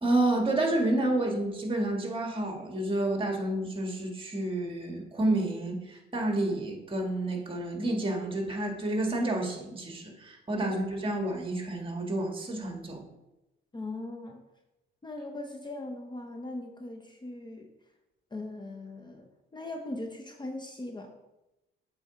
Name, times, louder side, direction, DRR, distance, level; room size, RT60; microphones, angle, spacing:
voice 1, 0.0-13.0, right 1 dB, 25° right, 2 dB, 1.7 m, -29 dB
voice 2, 13.7-14.4 15.0-17.7 18.3-21.1, left 2 dB, 20° left, 3 dB, 0.7 m, -40 dB
7.7 x 4.1 x 4.8 m, 0.98 s
cardioid pair, 90°, 20 cm